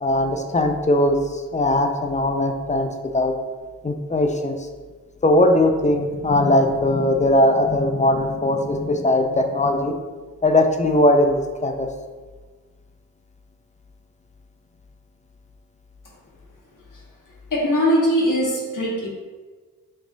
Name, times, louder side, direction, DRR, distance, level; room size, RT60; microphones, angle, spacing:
voice 1, 0.0-2.9 3.1-3.3 3.8-4.6 5.2-10.0 10.4-11.9, left 1 dB, 20° left, 4 dB, 0.5 m, -19 dB
voice 2, 17.5-19.1, equal, 55° left, -4 dB, 1.3 m, -21 dB
5.0 x 2.4 x 2.6 m, 1.4 s
cardioid pair, 45°, 36 cm